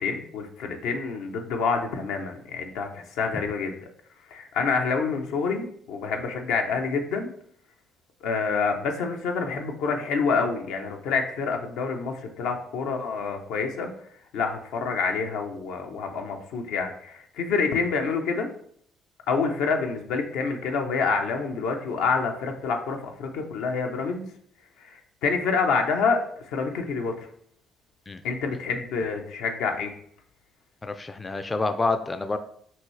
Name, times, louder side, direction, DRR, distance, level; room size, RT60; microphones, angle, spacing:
voice 1, 0.0-3.7 4.3-7.3 8.2-13.9 14.3-18.5 19.3-24.3 24.8-27.3 28.2-29.9, left 5 dB, 85° left, 3 dB, 0.7 m, -27 dB
voice 2, 30.8-32.4, left 3 dB, 25° left, 9 dB, 0.3 m, -28 dB
5.6 x 2.7 x 3.2 m, 0.64 s
cardioid pair, 90°, 0 cm